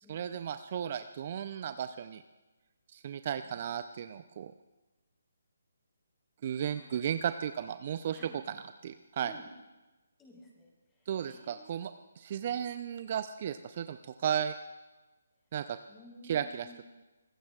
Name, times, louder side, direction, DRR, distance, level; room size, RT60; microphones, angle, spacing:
voice 1, 0.1-2.2 2.9-4.5 6.4-9.3 11.1-14.5 15.5-15.8 16.2-16.7, right 9 dB, 40° right, 10 dB, 0.6 m, -35 dB
voice 2, 6.6-7.3 8.1-8.4 9.2-9.4 10.2-11.8 15.9-16.8, left 1 dB, 10° left, -2 dB, 4.0 m, -55 dB
24.5 x 20.5 x 2.4 m, 1.1 s
figure-of-eight pair, 145°, 0 cm